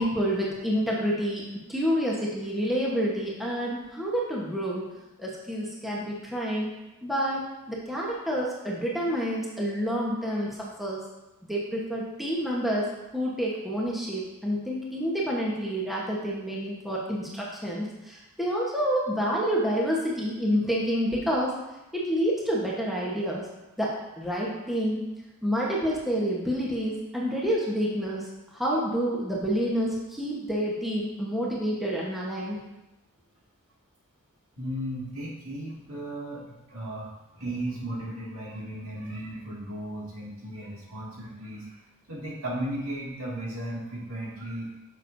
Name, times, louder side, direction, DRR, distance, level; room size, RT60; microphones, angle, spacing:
voice 1, 0.0-4.9 5.2-6.7 7.0-11.0 11.4-21.5 21.9-23.5 23.8-25.0 25.4-28.3 28.5-32.6, equal, ahead, -5 dB, 1.1 m, -28 dB
voice 2, 34.6-41.8 42.1-44.7, right 1 dB, 70° right, -5 dB, 2.2 m, -35 dB
9.1 x 6.6 x 2.7 m, 1.0 s
head